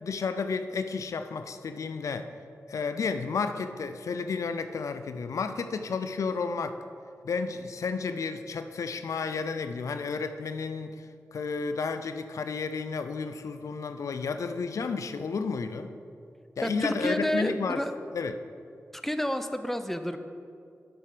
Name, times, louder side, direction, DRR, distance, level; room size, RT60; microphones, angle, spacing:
voice 1, 0.0-2.3 2.7-6.8 7.2-15.9 16.6-17.8 18.1-18.4, left 5 dB, 75° left, 9 dB, 0.5 m, -32 dB
voice 2, 16.6-17.9 18.9-20.2, equal, 5° left, 9 dB, 0.7 m, -30 dB
9.3 x 7.6 x 5.0 m, 2.4 s
cardioid pair, 55°, 5 cm